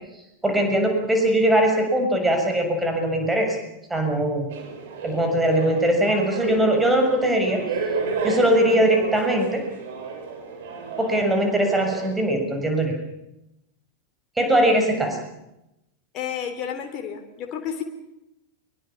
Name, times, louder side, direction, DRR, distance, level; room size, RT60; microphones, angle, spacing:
voice 1, 0.4-3.6 3.9-4.5 5.0-7.6 8.2-9.6 11.0-12.9 14.4-15.2, right 1 dB, 10° right, 3 dB, 7.0 m, -21 dB
sound 1, 4.5-12.1, right 4 dB, 55° right, 6.7 m, -31 dB
voice 2, 16.1-17.8, left 8 dB, 35° left, 4 dB, 3.2 m, -31 dB
25.0 x 23.0 x 7.3 m, 0.88 s
figure-of-eight pair, 90°, 0 cm